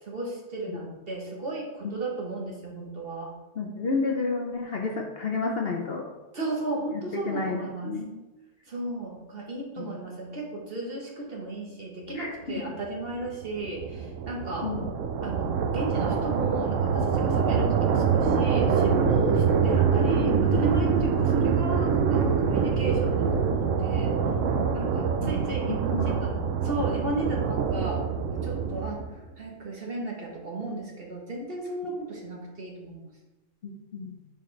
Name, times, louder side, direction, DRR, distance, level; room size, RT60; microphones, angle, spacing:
voice 1, 0.0-3.3 6.3-7.9 8.7-14.7 15.2-24.1 24.7-26.3 26.6-28.0 28.3-29.0 29.4-33.1, right 2 dB, 45° right, -2 dB, 1.5 m, -34 dB
voice 2, 3.5-6.1 6.9-8.1 9.8-9.9 12.1-12.7 14.6-14.9 25.2-26.4 33.6-34.2, left 4 dB, 50° left, 1 dB, 0.9 m, -31 dB
sound 1, 12.9-29.2, right 6 dB, 70° right, 1.0 m, -25 dB
9.5 x 4.5 x 3.2 m, 1.1 s
omnidirectional pair, 1.5 m